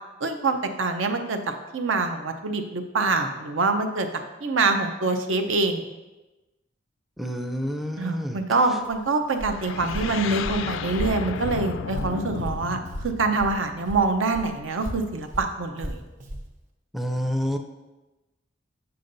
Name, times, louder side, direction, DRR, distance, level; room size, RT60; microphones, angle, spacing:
voice 1, 0.2-1.4 1.7-5.8 8.0-16.0, right 3 dB, 75° right, 6 dB, 0.7 m, -25 dB
voice 2, 7.2-8.4 16.9-17.6, equal, ahead, 5 dB, 0.4 m, -28 dB
Walk footsteps, 8.8-13.6 13.8-16.5, equal, 40° right, 0.8 m, -36 dB
sound 1, 9.5-14.3, left 6 dB, 70° left, 0.3 m, -34 dB
7.7 x 7.0 x 2.6 m, 1.1 s
head